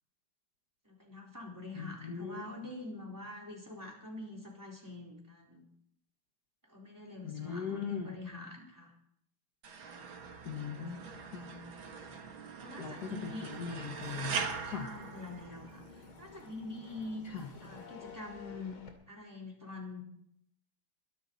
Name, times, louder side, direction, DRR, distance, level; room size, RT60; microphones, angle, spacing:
voice 1, 0.8-5.6 6.6-8.9 11.0-11.7 12.6-13.6 14.7-17.2 17.6-18.8 19.1-20.0, left 2 dB, 10° right, -2 dB, 4.0 m, -45 dB
voice 2, 1.8-2.4 7.2-8.2 10.5-11.1 11.3-11.5 12.8-14.4 14.6-14.9 17.3-17.5, left 6 dB, 55° left, 3 dB, 1.7 m, -39 dB
sound 1, 9.6-15.9, right 5 dB, 75° right, 2.3 m, -42 dB
sound 2, 13.3-18.9, left 3 dB, 80° left, 3.3 m, -52 dB
22.5 x 11.5 x 4.1 m, 0.68 s
omnidirectional pair, 2.2 m